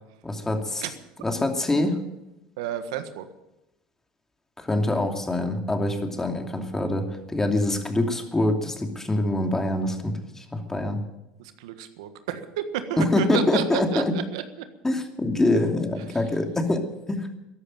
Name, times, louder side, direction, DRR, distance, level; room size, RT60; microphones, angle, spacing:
voice 1, 0.2-0.8 1.2-2.0 4.6-11.0 13.0-14.2 14.8-17.3, left 2 dB, 15° left, 4 dB, 2.7 m, -25 dB
voice 2, 2.6-3.3 11.4-14.7 16.1-16.2, right 10 dB, 85° right, 10 dB, 1.5 m, -31 dB
14.0 x 11.0 x 9.0 m, 0.95 s
supercardioid pair, 90°, 3 cm